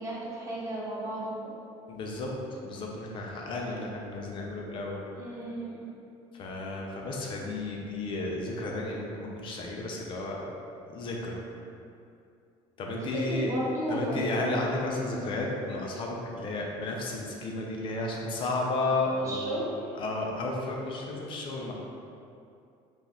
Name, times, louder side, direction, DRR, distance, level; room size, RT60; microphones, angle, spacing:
voice 1, 0.0-1.6 3.5-3.9 5.2-5.9 12.9-14.6 15.0-15.3 19.2-19.7, right 1 dB, 25° right, -7 dB, 1.0 m, -35 dB
voice 2, 1.9-5.0 6.3-10.5 10.9-11.4 12.8-13.5 13.9-19.7 19.9-21.7, left 2 dB, 40° left, -1 dB, 0.6 m, -33 dB
4.3 x 2.5 x 3.6 m, 2.5 s
cardioid pair, 145°, 13 cm